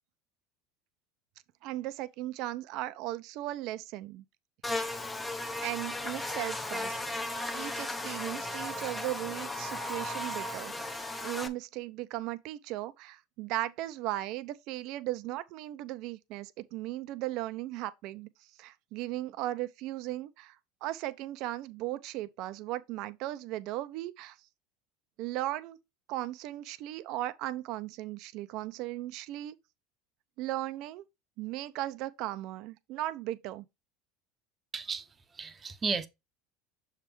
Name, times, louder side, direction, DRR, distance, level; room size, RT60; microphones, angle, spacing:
voice 1, 1.6-4.2 5.6-7.2 7.5-18.3 18.6-24.4 25.2-25.8 26.1-29.6 30.4-31.0 31.4-33.6, right 15 dB, 60° right, 0.7 m, -37 dB
Buzz, 4.6-11.5, left 1 dB, 15° left, 1.0 m, -36 dB
voice 2, 34.7-35.0 35.4-36.1, right 4 dB, 25° right, 0.9 m, -33 dB
6.6 x 3.5 x 4.6 m
supercardioid pair, 105°, 0 cm